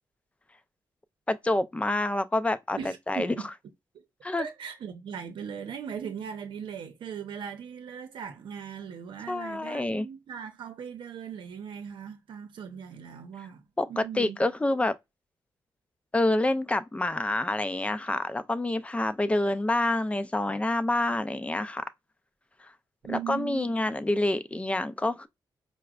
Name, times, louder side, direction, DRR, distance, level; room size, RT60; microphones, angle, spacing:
voice 1, 1.3-2.8 3.1-3.3 4.2-4.5 9.3-10.1 13.8-14.9 16.1-21.8 22.6-22.7 23.1-25.3, left 2 dB, 15° left, 0.5 m, -27 dB
voice 2, 2.8-3.5 3.9-4.0 4.4-14.4 23.0-23.7, right 8 dB, 80° right, 0.7 m, -39 dB
4.7 x 2.1 x 2.3 m
cardioid pair, 85°, 8 cm